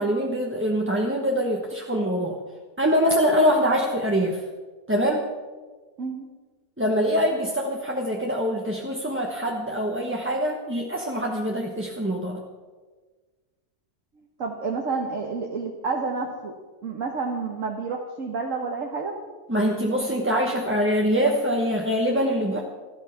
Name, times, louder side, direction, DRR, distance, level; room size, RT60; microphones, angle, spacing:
voice 1, 0.0-2.4 2.8-4.4 4.9-5.3 6.8-12.4 19.5-22.6, equal, 10° right, -1 dB, 0.9 m, -24 dB
voice 2, 6.0-6.3 14.2-16.5 16.8-19.2, right 4 dB, 55° right, 0 dB, 1.6 m, -29 dB
13.5 x 12.5 x 5.9 m, 1.4 s
omnidirectional pair, 1.7 m